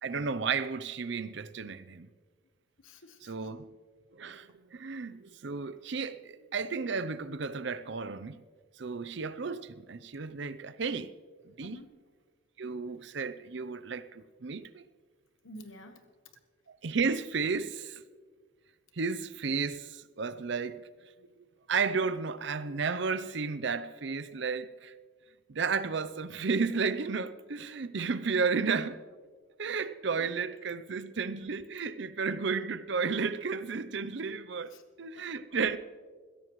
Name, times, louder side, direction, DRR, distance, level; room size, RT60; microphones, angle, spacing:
voice 1, 0.0-2.1 3.2-3.7 4.1-8.4 8.8-11.1 11.4-11.8 12.6-14.8 16.8-18.0 18.9-20.9 21.7-24.9 25.5-29.0 29.6-35.8, right 5 dB, 60° right, 0.6 m, -33 dB
voice 2, 2.8-3.5 11.6-11.9 15.4-16.0 30.2-30.4 34.7-34.8 35.1-35.5, left 1 dB, 80° left, 1.1 m, -50 dB
21.5 x 16.0 x 3.1 m
head